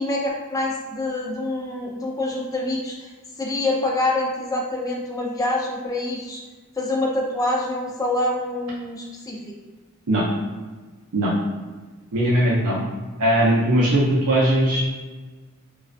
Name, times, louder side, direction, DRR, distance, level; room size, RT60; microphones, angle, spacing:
voice 1, 0.0-3.1 3.4-6.4 6.8-9.5, left 2 dB, 15° left, -1 dB, 0.3 m, -26 dB
voice 2, 12.1-12.8 13.2-14.8, right 1 dB, 80° right, -6 dB, 0.5 m, -19 dB
2.3 x 2.3 x 2.4 m, 1.3 s
head